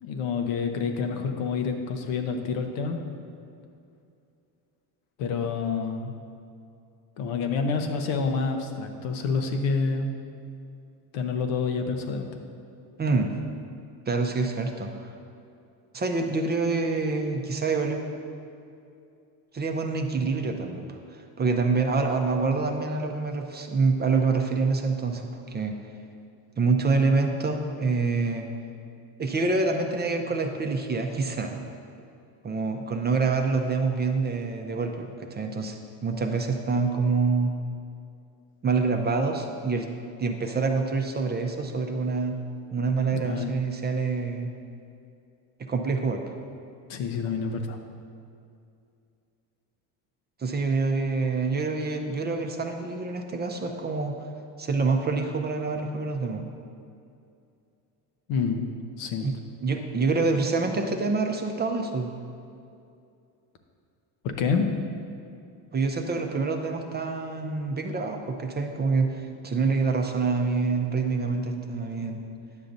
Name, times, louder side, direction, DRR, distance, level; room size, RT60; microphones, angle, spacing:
voice 1, 0.0-3.0 5.2-6.1 7.2-10.1 11.1-12.3 43.1-43.5 46.9-47.8 58.3-58.6 59.0-59.3 64.2-64.7, left 5 dB, 80° left, 5 dB, 0.9 m, -28 dB
voice 2, 13.0-13.3 14.1-15.1 15.9-18.0 19.5-25.8 26.6-28.5 29.2-31.6 32.4-35.8 36.0-37.7 38.6-39.9 40.2-42.4 42.7-44.5 45.7-46.2 50.4-54.3 54.6-56.4 59.2-59.3 59.6-62.1 65.7-72.2, right 4 dB, 25° right, 4 dB, 0.5 m, -26 dB
9.7 x 6.8 x 2.6 m, 2.5 s
supercardioid pair, 95°, 46 cm